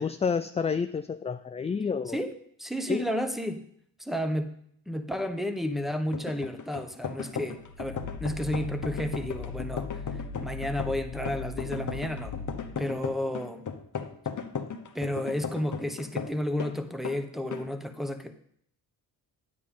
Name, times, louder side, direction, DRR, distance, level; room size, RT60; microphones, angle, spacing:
voice 1, 0.0-2.2 2.9-3.1 12.8-13.0, left 5 dB, 15° left, 9 dB, 0.3 m, -29 dB
voice 2, 2.6-3.6 4.0-4.5 4.9-9.9 10.4-12.4 12.8-13.7 14.9-18.3, equal, ahead, 9 dB, 1.0 m, -32 dB
sound 1, 6.1-16.8 17.0-17.2 17.5-17.7, left 6 dB, 40° left, 1.0 m, -36 dB
sound 2, 7.5-13.0, left 4 dB, 85° left, 0.8 m, -39 dB
9.4 x 8.6 x 3.8 m, 0.68 s
supercardioid pair, 50°, 45 cm